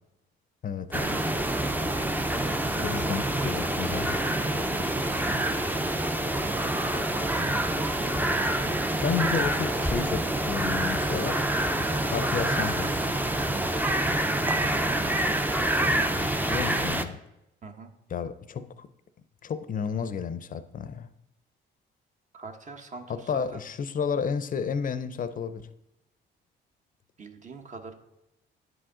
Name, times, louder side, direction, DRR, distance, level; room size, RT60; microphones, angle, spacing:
voice 1, 0.6-1.2 2.8-4.2 9.0-11.5 12.0-13.1 16.5-17.2 18.1-18.9 19.4-21.1 23.1-25.7, left 6 dB, 45° left, 0.6 m, -32 dB
sound 1, 0.9-17.0, right 1 dB, 10° right, 0.5 m, -27 dB
voice 2, 2.7-3.8 4.5-6.0 6.3-7.0 14.6-15.3 17.6-17.9 22.3-23.6 27.2-27.9, right 3 dB, 40° right, 0.9 m, -44 dB
9.7 x 4.9 x 3.8 m
cardioid pair, 90°, 20 cm